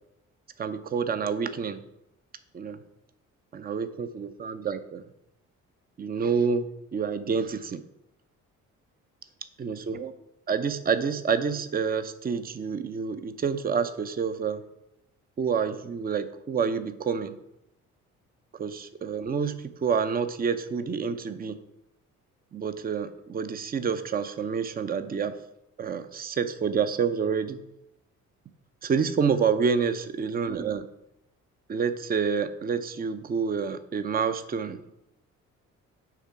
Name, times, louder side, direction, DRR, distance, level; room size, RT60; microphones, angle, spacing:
voice 1, 0.6-1.8 2.5-2.8 3.5-5.0 6.0-7.8 9.6-10.1 10.5-14.6 15.4-17.4 18.6-21.6 22.5-25.3 25.8-27.6 28.8-30.9 31.7-34.8, right 6 dB, 20° right, 11 dB, 0.6 m, -28 dB
9.1 x 3.6 x 4.7 m, 0.83 s
figure-of-eight pair, 45°, 42 cm